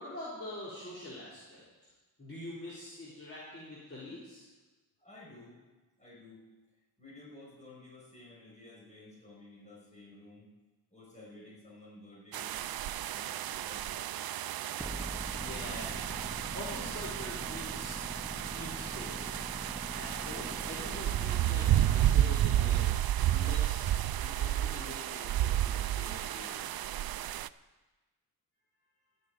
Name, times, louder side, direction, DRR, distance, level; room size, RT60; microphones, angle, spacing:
voice 1, 0.0-1.9 2.2-4.5 15.3-16.0 16.5-18.0 18.5-19.2 20.0-23.9 24.2-26.7, left 1 dB, 35° left, -8 dB, 3.8 m, -45 dB
voice 2, 5.0-5.6 6.0-6.5 7.0-10.5 10.9-12.5 13.1-14.2, left 2 dB, 20° left, -5 dB, 5.8 m, -53 dB
sound 1, 12.3-27.5, right 12 dB, 70° right, 0.5 m, -32 dB
sound 2, 14.8-22.8, equal, 5° right, 0.7 m, -43 dB
14.5 x 7.1 x 9.2 m, 1.2 s
wide cardioid pair, 135°, 38 cm